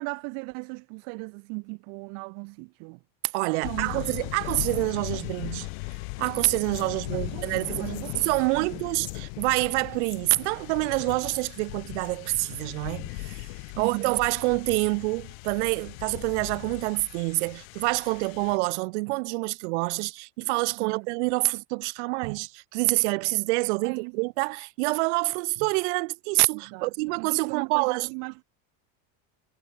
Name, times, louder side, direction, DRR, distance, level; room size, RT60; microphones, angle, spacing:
voice 1, 0.0-3.0 3.6-4.0 7.1-8.8 13.8-14.1 20.8-21.1 23.8-24.2 26.5-28.4, right 38 dB, 60° right, 4.4 m, -37 dB
voice 2, 3.3-5.7 6.2-7.8 8.2-13.5 13.8-28.1, right 27 dB, 85° right, 0.9 m, -27 dB
sound 1, 3.6-18.6, left 33 dB, 70° left, 2.0 m, -38 dB
sound 2, 6.6-6.9 7.8-8.2 8.4-8.5 8.9-9.2 9.9-10.2 11.1-11.2 12.0-12.3, left 19 dB, 45° left, 5.9 m, -49 dB
cardioid pair, 170°, 34 cm